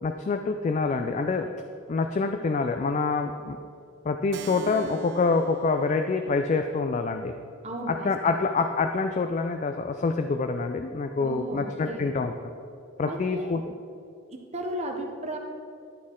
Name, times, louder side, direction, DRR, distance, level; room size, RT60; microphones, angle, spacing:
voice 1, 0.0-1.5 1.9-3.6 4.0-7.3 7.9-12.3 13.0-13.6, left 4 dB, 35° left, 7 dB, 0.3 m, -26 dB
Keyboard (musical), 4.3-9.4, right 7 dB, 60° right, 0.3 m, -45 dB
voice 2, 7.6-8.4 11.2-12.1 13.0-13.6 14.3-15.4, right 1 dB, 35° right, 2 dB, 0.7 m, -35 dB
11.5 x 6.3 x 3.7 m, 2.5 s
head